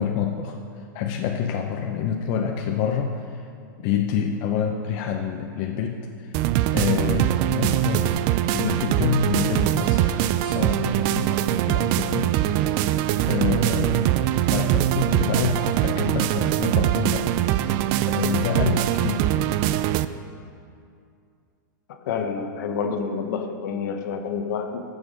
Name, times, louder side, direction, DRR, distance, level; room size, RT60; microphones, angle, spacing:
voice 1, 0.0-3.5 3.8-6.4 6.7-12.4 13.3-14.2 14.5-17.7 18.1-19.3, left 7 dB, 40° left, 2 dB, 0.7 m, -27 dB
sound 1, 6.3-20.1, right 13 dB, 35° right, 0.3 m, -22 dB
voice 2, 21.9-24.8, left 6 dB, 65° left, 6 dB, 1.1 m, -28 dB
12.0 x 7.0 x 5.1 m, 2.4 s
supercardioid pair, 145°, 11 cm